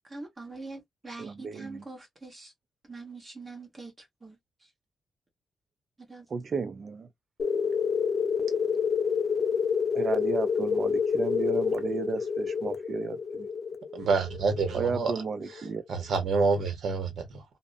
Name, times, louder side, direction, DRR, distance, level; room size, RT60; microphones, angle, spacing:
voice 1, 0.0-2.5 2.9-4.4 6.0-6.3, right 3 dB, 20° right, 1.0 m, -44 dB
voice 2, 1.2-1.8 6.3-7.1 9.9-13.5 14.7-15.8, right 5 dB, 35° right, 0.4 m, -33 dB
sound 1, 7.4-15.7, left 6 dB, 40° left, 0.4 m, -28 dB
voice 3, 13.9-15.1 15.9-17.4, right 4 dB, 60° right, 0.8 m, -27 dB
2.5 x 2.0 x 2.5 m
wide cardioid pair, 170°, 0 cm